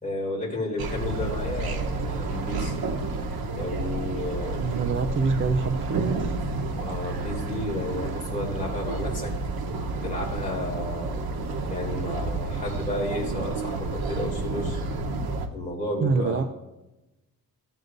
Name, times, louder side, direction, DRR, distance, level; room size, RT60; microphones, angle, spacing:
voice 1, 0.0-2.8 3.5-4.7 6.7-11.3 11.7-14.8 15.5-16.4, left 1 dB, 20° left, -3 dB, 2.6 m, -32 dB
sound 1, 0.8-15.5, right 3 dB, 85° right, 1.0 m, -30 dB
voice 2, 4.6-6.4 16.0-16.4, right 4 dB, 35° right, 6 dB, 0.4 m, -26 dB
13.5 x 7.9 x 2.6 m, 0.96 s
wide cardioid pair, 160°, 36 cm